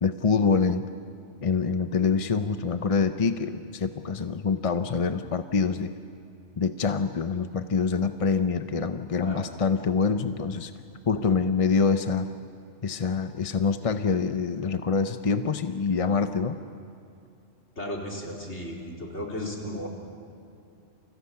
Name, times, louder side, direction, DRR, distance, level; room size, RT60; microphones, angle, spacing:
voice 1, 0.0-0.8 1.4-5.9 6.6-10.7 11.1-12.3 12.8-16.6, left 5 dB, 35° left, 9 dB, 0.6 m, -25 dB
voice 2, 17.8-19.9, left 1 dB, 60° left, -2 dB, 4.3 m, -35 dB
29.5 x 29.0 x 5.8 m, 2.6 s
omnidirectional pair, 1.3 m